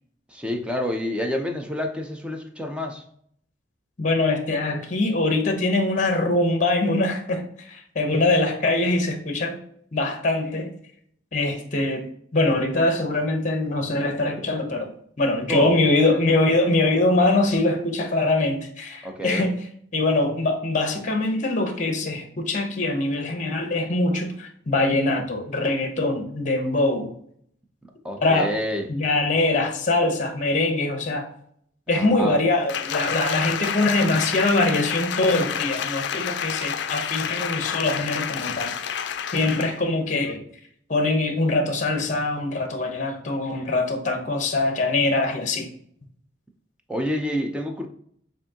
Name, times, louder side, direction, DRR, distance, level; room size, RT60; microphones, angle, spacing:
voice 1, 0.3-3.0 15.5-15.8 19.0-19.5 28.0-28.9 31.9-32.4 46.9-47.9, left 1 dB, 5° right, 3 dB, 0.6 m, -28 dB
voice 2, 4.0-9.6 9.9-10.7 11.3-12.0 12.3-14.9 15.2-19.6 19.9-27.1 28.2-28.5 28.9-31.3 31.9-38.8 39.3-40.4 40.9-45.7, left 2 dB, 40° left, 5 dB, 0.8 m, -23 dB
Applause, 32.7-39.8 40.2-40.4, left 8 dB, 65° left, 0.4 m, -29 dB
6.8 x 2.7 x 2.8 m, 0.65 s
head